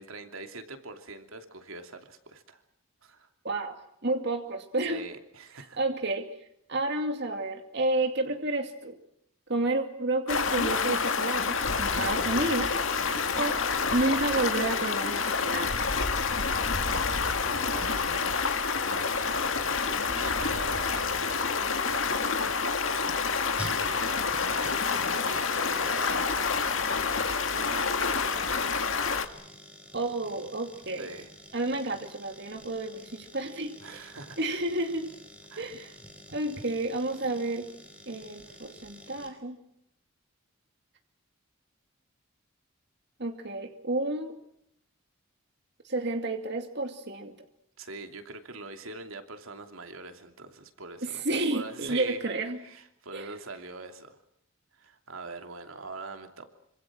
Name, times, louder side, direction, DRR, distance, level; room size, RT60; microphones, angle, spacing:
voice 1, 0.0-2.6 3.0-3.3 4.9-5.8 12.9-13.4 17.4-26.4 26.9-29.0 31.0-31.3 33.8-34.4 35.5-35.7 47.8-51.2 51.5-52.2 52.6-54.2 54.7-56.5, right 3 dB, 80° right, 6 dB, 2.9 m, -43 dB
voice 2, 3.4-3.8 4.0-5.0 5.8-6.3 6.7-9.0 9.5-12.7 13.4-13.6 13.9-15.8 29.9-31.1 31.5-34.1 34.4-35.1 35.6-36.0 36.3-37.7 38.1-39.6 43.2-44.3 45.8-47.3 51.0-52.6 53.1-53.3, right 2 dB, 55° right, 5 dB, 2.5 m, -30 dB
Stream, 10.3-29.3, left 5 dB, 70° left, 2.1 m, -28 dB
sound 1, 23.6-39.3, right 1 dB, 5° right, 4.5 m, -48 dB
26.5 x 26.0 x 6.2 m, 0.75 s
head